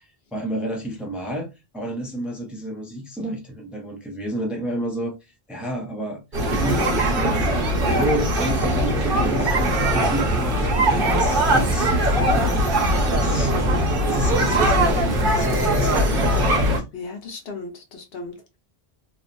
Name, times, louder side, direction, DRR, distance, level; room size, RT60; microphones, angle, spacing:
voice 1, 0.3-6.2 6.5-7.5 7.8-16.8, equal, ahead, 0.6 m, -31 dB
sound 1, 6.3-16.8, right 1 dB, 50° right, 1.0 m, -20 dB
voice 2, 16.9-18.6, left 4 dB, 70° left, 0.9 m, -34 dB
3.0 x 2.1 x 2.5 m
omnidirectional pair, 1.0 m